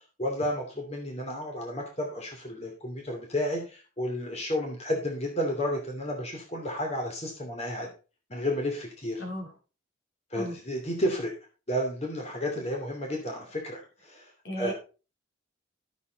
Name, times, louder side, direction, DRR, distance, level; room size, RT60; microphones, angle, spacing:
voice 1, 0.2-7.9 8.3-9.2 10.3-11.3 11.7-14.3 14.6-14.7, equal, 30° left, 1 dB, 2.7 m, -32 dB
voice 2, 9.2-9.5 10.4-10.5 14.4-14.7, equal, 55° left, 2 dB, 3.4 m, -35 dB
12.5 x 8.2 x 4.0 m, 0.33 s
head